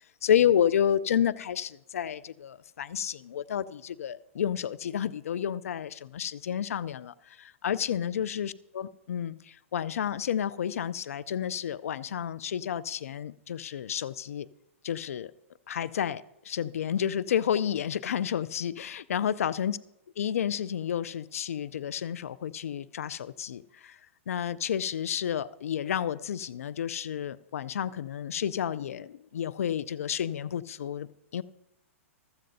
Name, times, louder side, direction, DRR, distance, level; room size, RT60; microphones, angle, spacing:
voice 1, 0.2-14.5 14.8-15.3 15.7-19.8 20.2-24.0 24.3-31.1 31.3-31.4, left 9 dB, 80° left, 0.4 m, -30 dB
15.0 x 13.0 x 2.7 m
hypercardioid pair, 130°, 8 cm